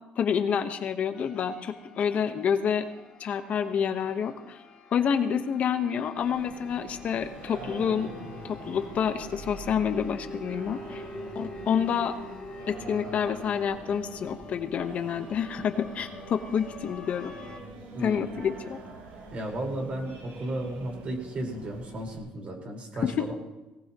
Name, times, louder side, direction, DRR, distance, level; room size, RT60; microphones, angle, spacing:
voice 1, 0.2-2.9 3.2-4.6 4.9-8.1 8.4-11.1 11.3-12.1 12.7-17.3 18.0-18.8 23.0-23.3, left 7 dB, 50° left, 7 dB, 1.2 m, -28 dB
sound 1, 1.1-17.6, left 2 dB, 25° left, 2.8 m, -46 dB
Singing, 6.2-22.2, right 2 dB, 80° right, 6.4 m, -44 dB
voice 2, 19.3-23.3, right 1 dB, 40° right, 1 dB, 4.8 m, -34 dB
21.5 x 18.0 x 3.1 m, 1.0 s
cardioid pair, 115°, 3 cm